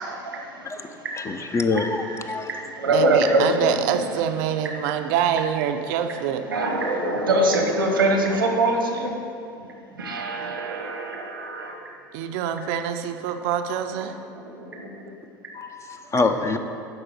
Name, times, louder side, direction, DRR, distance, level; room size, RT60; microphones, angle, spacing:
voice 1, 0.0-1.5 2.0-3.6 6.5-9.2 9.6-11.9 14.6-14.9, right 2 dB, 90° right, 3 dB, 1.2 m, -24 dB
voice 2, 1.3-2.0 2.3-2.5 15.5-16.6, left 3 dB, 25° left, 6 dB, 0.8 m, -25 dB
voice 3, 2.9-6.4 12.1-14.2, right 9 dB, 65° right, 7 dB, 0.6 m, -25 dB
7.9 x 5.5 x 7.0 m, 2.6 s
hypercardioid pair, 75°, 11 cm